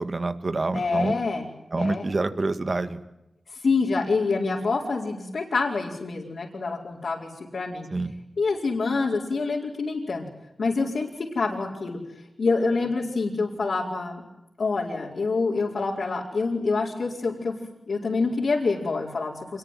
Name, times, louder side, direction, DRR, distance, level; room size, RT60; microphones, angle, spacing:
voice 1, 0.0-1.1 1.7-3.0 7.9-8.1, right 3 dB, 40° right, 10 dB, 2.1 m, -27 dB
voice 2, 0.7-1.5 1.8-2.1 3.5-7.9 8.4-10.2 10.6-12.0 12.4-14.2 14.6-17.5 17.9-19.6, left 4 dB, 70° left, -3 dB, 4.8 m, -26 dB
27.0 x 22.0 x 9.4 m, 0.88 s
wide cardioid pair, 95°, 0 cm